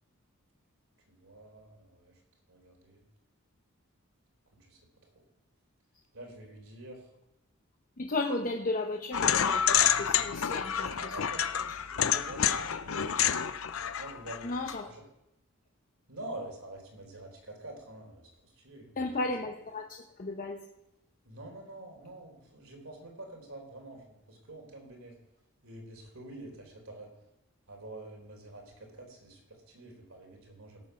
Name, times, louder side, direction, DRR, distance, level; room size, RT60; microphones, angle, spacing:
voice 1, 1.1-2.2 2.5-3.0 4.5-5.2 6.1-7.1 11.0-13.5 14.0-15.0 16.1-19.0 21.3-25.2 25.6-27.1 27.7-30.9, right 1 dB, 70° right, 2 dB, 3.5 m, -47 dB
voice 2, 8.0-11.1 14.4-14.9 19.0-20.6, left 2 dB, 40° left, 2 dB, 0.9 m, -34 dB
sound 1, 9.1-14.8, left 9 dB, 75° left, 0.6 m, -28 dB
17.5 x 7.3 x 5.7 m, 0.87 s
head